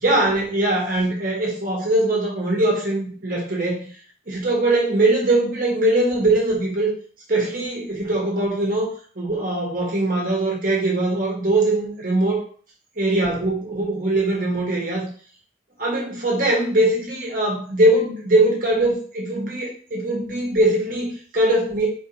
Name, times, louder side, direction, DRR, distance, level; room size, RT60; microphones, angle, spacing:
voice 1, 0.0-3.8 4.3-6.9 7.3-8.9 9.1-12.4 13.0-15.1 15.8-21.9, right 1 dB, 45° right, -3 dB, 1.5 m, -21 dB
4.5 x 3.6 x 2.9 m, 0.44 s
head